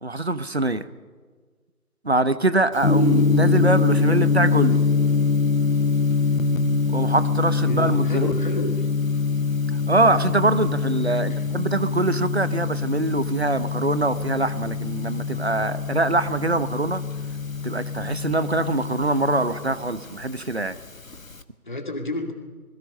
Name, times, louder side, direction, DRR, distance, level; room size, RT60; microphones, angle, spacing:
voice 1, 0.0-0.9 2.0-4.8 6.9-8.3 9.9-17.0 17.6-20.8, right 2 dB, 45° right, 15 dB, 1.0 m, -23 dB
Gong, 2.8-21.4, left 4 dB, 60° left, 1.4 m, -24 dB
voice 2, 7.6-8.9 11.2-11.5 21.6-22.3, left 2 dB, 30° left, 3 dB, 2.3 m, -31 dB
27.5 x 21.0 x 5.5 m, 1.5 s
figure-of-eight pair, 165°, 45 cm